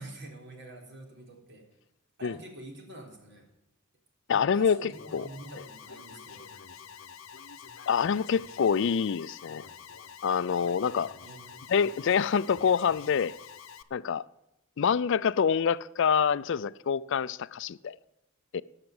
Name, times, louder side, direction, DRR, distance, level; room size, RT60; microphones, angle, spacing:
voice 1, 0.0-1.7 2.2-3.5 4.3-6.5 11.2-11.8, right 2 dB, 60° right, 3.7 m, -46 dB
voice 2, 4.3-5.3 7.9-9.6 10.2-11.1 11.7-13.3 13.9-14.3 14.8-18.0 18.5-18.6, left 6 dB, 60° left, 0.4 m, -26 dB
Alarm, 4.9-13.8, left 7 dB, 80° left, 0.8 m, -47 dB
19.0 x 6.7 x 7.8 m
head